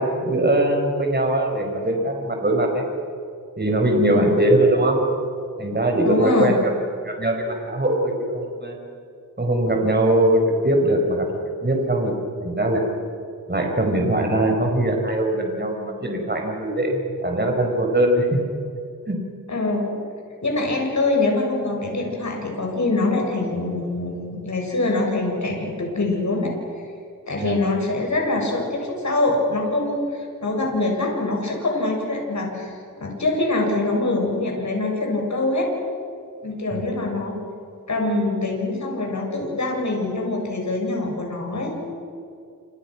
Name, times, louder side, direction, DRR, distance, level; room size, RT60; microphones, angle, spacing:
voice 1, 0.0-2.9 3.6-5.0 5.6-6.6 7.0-8.8 9.4-11.3 11.6-12.1 12.4-12.8 13.5-18.4 19.1-19.2 27.4-27.6, right 1 dB, 30° right, 2 dB, 5.4 m, -21 dB
voice 2, 4.0-4.3 6.0-6.5 19.5-20.0 20.4-26.5 27.3-35.7 36.4-37.3 37.9-41.9, left 2 dB, 55° left, 0 dB, 7.1 m, -24 dB
29.0 x 27.5 x 6.3 m, 2.4 s
wide cardioid pair, 85°, 34 cm